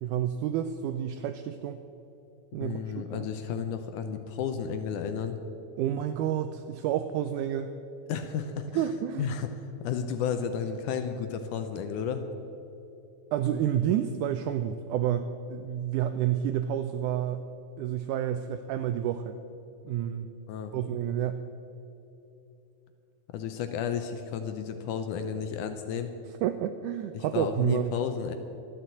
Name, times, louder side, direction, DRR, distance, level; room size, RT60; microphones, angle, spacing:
voice 1, 0.0-1.8 2.5-2.8 3.1-3.3 5.8-7.7 8.8-9.3 13.3-17.4 17.8-19.4 19.9-20.3 20.7-21.4 26.4-28.0, right 10 dB, 90° right, 9 dB, 1.7 m, -29 dB
voice 2, 2.6-5.4 8.1-8.9 9.2-9.5 9.8-12.2 20.5-20.7 23.3-26.1 27.1-28.3, left 7 dB, 75° left, 8 dB, 1.9 m, -32 dB
12.5 x 10.5 x 7.7 m, 3.0 s
omnidirectional pair, 4.1 m